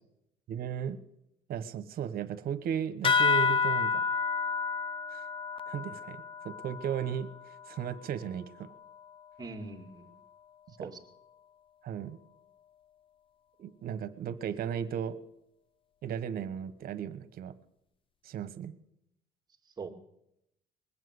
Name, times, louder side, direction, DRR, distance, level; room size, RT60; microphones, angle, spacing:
voice 1, 0.5-1.0 1.5-4.1 5.1-5.2 5.7-7.3 7.7-8.7 10.8-10.9 11.8-12.2 13.6-15.2 16.0-17.5 18.2-18.7, right 8 dB, 60° right, 13 dB, 1.2 m, -35 dB
sound 1, 3.0-8.0, left 5 dB, 30° left, 0.6 m, -30 dB
voice 2, 9.4-10.1 10.8-11.0 19.8-19.9, right 3 dB, 25° right, 4 dB, 2.2 m, -41 dB
21.0 x 7.5 x 8.1 m, 0.80 s
cardioid pair, 110°, 17 cm